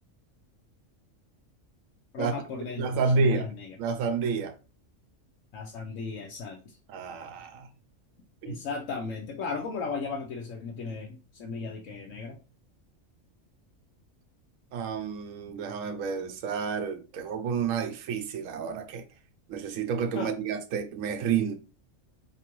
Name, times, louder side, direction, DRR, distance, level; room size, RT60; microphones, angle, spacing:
voice 1, 2.1-3.8 5.5-6.8 8.4-12.4 20.1-20.3, left 4 dB, 80° left, 1.0 m, -36 dB
voice 2, 2.8-3.5 3.8-4.5 6.9-7.7 8.5-8.6 14.7-19.0 19.5-21.6, right 5 dB, 90° right, 1.0 m, -29 dB
4.7 x 2.9 x 2.9 m
omnidirectional pair, 1.4 m